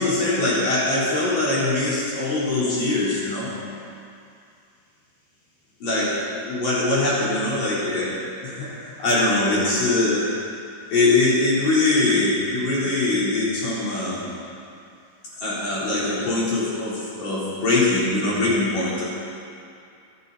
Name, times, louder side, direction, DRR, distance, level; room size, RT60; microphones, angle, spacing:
voice 1, 0.0-3.5 5.8-10.3 10.9-14.3 15.4-19.0, left 2 dB, 70° left, -8 dB, 5.7 m, -22 dB
25.5 x 10.5 x 4.3 m, 2.4 s
omnidirectional pair, 3.9 m